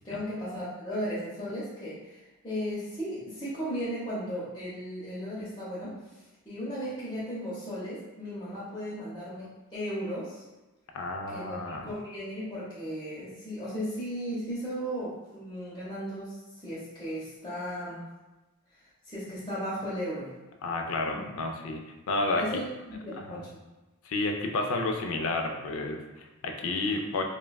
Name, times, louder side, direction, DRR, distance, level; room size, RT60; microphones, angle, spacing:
voice 1, 0.0-5.9 6.5-10.4 11.3-18.0 19.1-20.3 21.1-21.2 22.3-23.5, equal, 20° left, -10 dB, 0.6 m, -36 dB
voice 2, 10.9-11.9 20.6-21.8 22.1-22.4 23.3-23.4 24.0-27.2, left 2 dB, 75° left, 3 dB, 0.4 m, -31 dB
3.3 x 2.2 x 2.2 m, 1.1 s
head